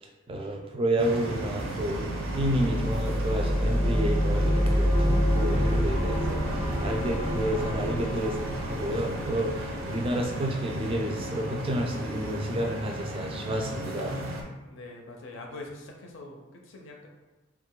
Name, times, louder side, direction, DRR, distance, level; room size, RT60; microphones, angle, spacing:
voice 1, 0.0-14.2, right 1 dB, 25° right, 2 dB, 0.4 m, -30 dB
sound 1, 1.0-14.4, right 1 dB, 75° right, 0.6 m, -35 dB
sound 2, 1.6-10.3, equal, 15° left, 0.6 m, -27 dB
voice 2, 14.7-17.1, left 2 dB, 65° left, 1 dB, 0.5 m, -43 dB
2.9 x 2.4 x 3.8 m, 1.1 s
head